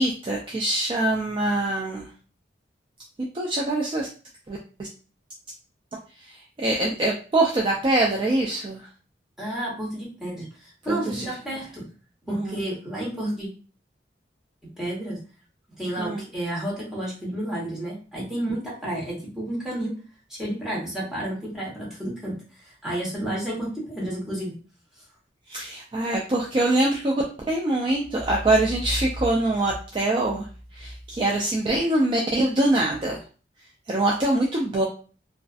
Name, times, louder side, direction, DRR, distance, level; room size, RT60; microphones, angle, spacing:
voice 1, 0.0-2.1 3.3-4.1 4.5-4.6 6.6-8.8 10.9-11.3 12.3-12.6 16.0-16.2 25.5-30.5 30.8-33.2 33.9-34.8, right 2 dB, 30° right, -2 dB, 0.3 m, -24 dB
voice 2, 9.4-11.8 12.2-13.5 14.8-15.2 15.8-19.9 20.3-24.6, right 1 dB, 5° right, -6 dB, 1.0 m, -31 dB
2.4 x 2.4 x 2.3 m, 0.37 s
head